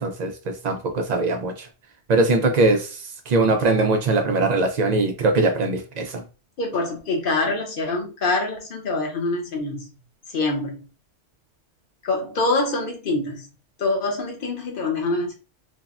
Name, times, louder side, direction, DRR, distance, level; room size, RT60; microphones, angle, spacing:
voice 1, 0.0-1.7 2.1-6.2, right 2 dB, 65° right, 0.4 m, -21 dB
voice 2, 6.6-9.9 10.3-10.9 12.0-13.5 13.8-15.3, left 2 dB, 50° left, 0.9 m, -25 dB
3.4 x 2.1 x 2.4 m
omnidirectional pair, 1.2 m